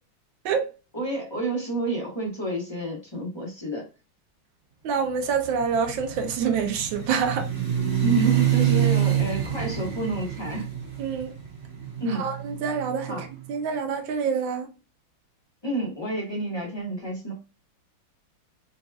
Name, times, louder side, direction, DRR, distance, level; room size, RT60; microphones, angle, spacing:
voice 1, 0.9-3.9 8.0-10.7 12.0-12.3 13.1-13.3 15.6-17.3, right 2 dB, 15° left, 1.0 m, -29 dB
voice 2, 4.8-7.5 11.0-11.3 12.1-14.7, right 6 dB, 75° right, 1.5 m, -27 dB
sound 1, 5.3-13.3, right 10 dB, 40° right, 1.8 m, -27 dB
4.1 x 3.1 x 2.3 m
omnidirectional pair, 2.2 m